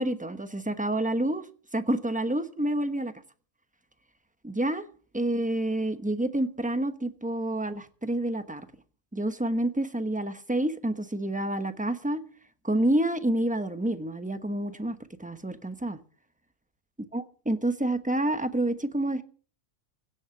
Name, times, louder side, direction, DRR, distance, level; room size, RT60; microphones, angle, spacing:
voice 1, 0.0-1.4 1.7-3.1 4.4-4.8 5.1-8.6 9.1-12.2 12.6-16.0 17.1-19.2, right 1 dB, 5° right, 10 dB, 0.9 m, -28 dB
16.5 x 8.0 x 7.0 m, 0.43 s
omnidirectional pair, 1.5 m